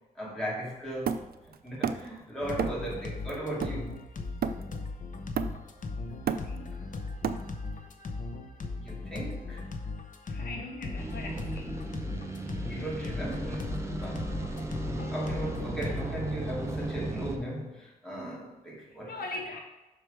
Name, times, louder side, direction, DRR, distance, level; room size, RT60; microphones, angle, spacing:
voice 1, 0.2-1.3 1.6-3.9 8.8-9.6 12.6-13.6 14.0-14.3 15.1-19.2, right 1 dB, 5° left, -6 dB, 2.2 m, -37 dB
Hammer, 1.1-2.2 2.6-2.9 3.3-4.9 5.4-5.8 6.1-7.8, right 7 dB, 75° right, 0.4 m, -33 dB
sound 1, 2.4-16.1, left 3 dB, 55° left, 0.7 m, -38 dB
voice 2, 6.4-6.9 10.2-11.8 18.2-18.4 18.9-19.6, left 2 dB, 85° left, 1 dB, 1.1 m, -41 dB
sound 2, 11.0-17.4, right 2 dB, 15° right, 0.7 m, -36 dB
6.0 x 4.7 x 4.9 m, 1.1 s
wide cardioid pair, 125°, 16 cm